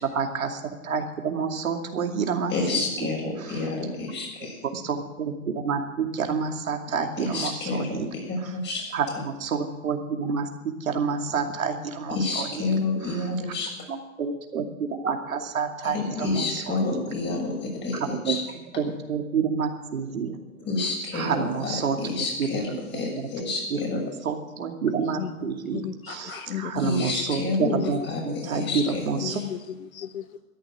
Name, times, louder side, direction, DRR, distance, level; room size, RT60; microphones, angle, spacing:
voice 1, 0.1-3.1 3.4-3.7 4.7-8.1 8.4-8.5 8.9-10.5 10.8-12.7 13.1-13.2 13.9-16.8 18.1-18.4 18.8-20.4 21.1-22.0 22.4-22.6 22.9-23.0 23.7-28.0 28.2-29.4, right 5 dB, 80° right, 4 dB, 2.6 m, -29 dB
voice 2, 2.5-4.6 7.2-8.9 12.1-13.7 15.8-18.4 20.7-24.0 26.1-26.4 26.8-29.0 29.3-29.4, left 3 dB, 25° left, 0 dB, 7.2 m, -29 dB
voice 3, 27.0-27.4 27.8-27.9 29.2-30.4, left 9 dB, 90° left, 16 dB, 0.8 m, -34 dB
13.5 x 11.0 x 9.2 m, 1.0 s
hypercardioid pair, 115°, 41 cm